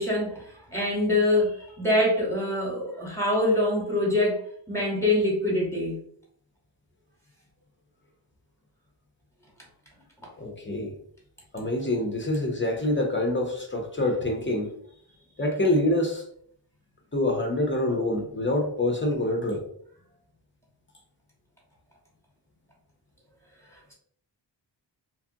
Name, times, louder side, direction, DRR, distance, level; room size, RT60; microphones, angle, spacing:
voice 1, 0.0-4.4 4.7-6.0, left 1 dB, 5° left, -3 dB, 1.1 m, -24 dB
voice 2, 10.4-10.9 11.5-14.7 15.4-16.2 17.1-19.6, left 1 dB, 25° left, 2 dB, 0.5 m, -26 dB
2.9 x 2.4 x 2.7 m, 0.64 s
wide cardioid pair, 100°, 45 cm